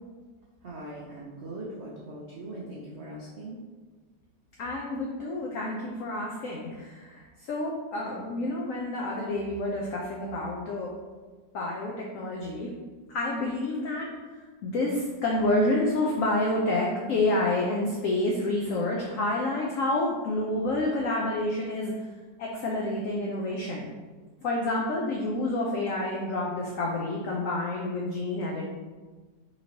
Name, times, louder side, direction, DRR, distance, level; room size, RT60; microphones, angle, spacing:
voice 1, 0.6-3.6, right 1 dB, 85° right, -5 dB, 0.6 m, -40 dB
voice 2, 4.6-10.9 11.5-12.7 13.1-14.1 14.6-21.9 22.4-23.9 24.4-28.7, left 2 dB, 85° left, -2 dB, 0.7 m, -29 dB
4.3 x 2.9 x 2.7 m, 1.3 s
omnidirectional pair, 1.9 m